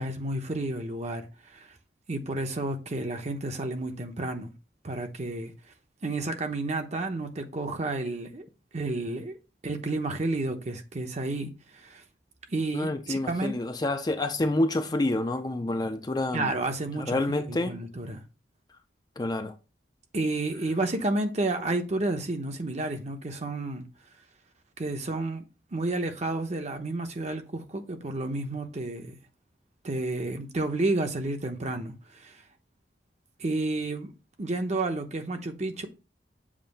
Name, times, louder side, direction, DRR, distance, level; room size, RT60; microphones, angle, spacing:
voice 1, 0.0-1.7 2.1-4.5 4.8-5.5 6.0-8.5 8.7-9.4 9.6-12.0 12.5-13.5 16.3-17.2 17.5-18.2 20.1-23.9 24.8-25.4 25.7-29.2 29.8-32.4 33.4-34.1 34.4-35.9, right 2 dB, 40° right, 0.8 m, -31 dB
voice 2, 12.7-16.5 17.0-17.7 19.2-19.5, left 2 dB, 20° left, 0.5 m, -28 dB
7.3 x 2.6 x 5.3 m
head